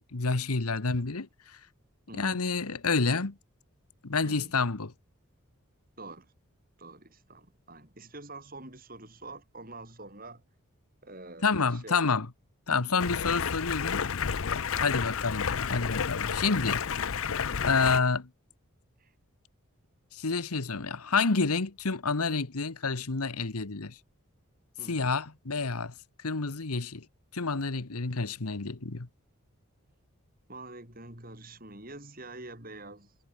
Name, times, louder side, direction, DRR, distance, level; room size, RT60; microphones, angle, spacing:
voice 1, 0.0-1.6 2.1-3.4 4.0-4.9 11.4-12.3 12.7-14.0 14.8-16.8 17.7-18.3 20.1-24.0 24.9-25.9 26.2-27.0 27.3-29.1, left 4 dB, 90° left, 1.3 m, -29 dB
voice 2, 2.1-2.5 4.2-4.6 6.0-6.3 6.8-10.4 11.0-12.2 13.0-13.3 14.8-15.0 19.0-19.1 24.8-25.1 30.5-33.2, right 2 dB, 40° right, 6.9 m, -46 dB
Stream, 13.0-18.0, left 7 dB, 70° left, 0.6 m, -31 dB
head